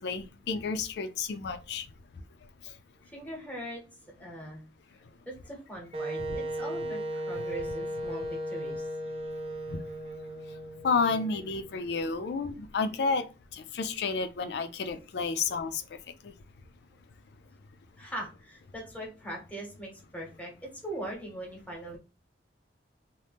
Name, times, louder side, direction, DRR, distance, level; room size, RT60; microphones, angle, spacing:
voice 1, 0.0-1.9 6.2-6.4 9.7-9.8 10.8-13.2 13.5-15.8 16.2-16.3, left 4 dB, 70° left, 9 dB, 0.4 m, -31 dB
voice 2, 3.0-3.8 4.2-4.6 5.2-8.9 18.0-22.0, right 1 dB, 10° left, -1 dB, 0.9 m, -41 dB
Wind instrument woodwind instrument, 5.9-11.8, right 1 dB, 35° right, 0.4 m, -36 dB
2.8 x 2.1 x 3.3 m, 0.32 s
head